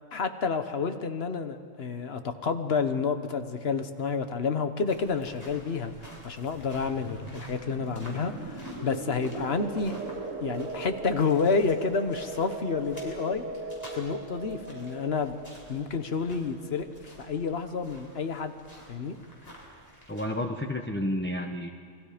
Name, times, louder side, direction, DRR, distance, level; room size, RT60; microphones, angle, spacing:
voice 1, 0.1-10.0 10.4-13.4 13.9-15.4 15.7-16.9 17.2-18.5 18.9-19.2, left 5 dB, 55° left, 9 dB, 1.4 m, -29 dB
sound 1, 4.9-20.2, equal, 30° left, 5.6 m, -50 dB
sound 2, 6.5-17.0, right 3 dB, 75° right, 2.0 m, -39 dB
voice 2, 20.1-21.7, left 1 dB, 10° left, 3 dB, 0.9 m, -31 dB
29.0 x 23.0 x 5.1 m, 2.2 s
omnidirectional pair, 1.3 m